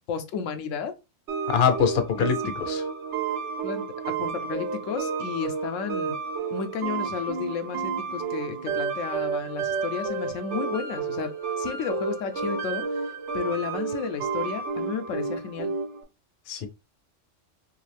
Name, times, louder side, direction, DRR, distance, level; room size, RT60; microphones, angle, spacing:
voice 1, 0.1-0.9 2.2-2.3 3.6-3.8 4.2-6.2 6.5-11.3 11.6-12.8 13.3-15.7, left 6 dB, 85° left, 0.9 m, -32 dB
sound 1, 1.3-16.0, right 5 dB, 70° right, 1.0 m, -31 dB
voice 2, 1.5-2.8 16.5-16.7, left 7 dB, 60° left, 0.8 m, -24 dB
3.1 x 2.6 x 3.3 m
omnidirectional pair, 1.3 m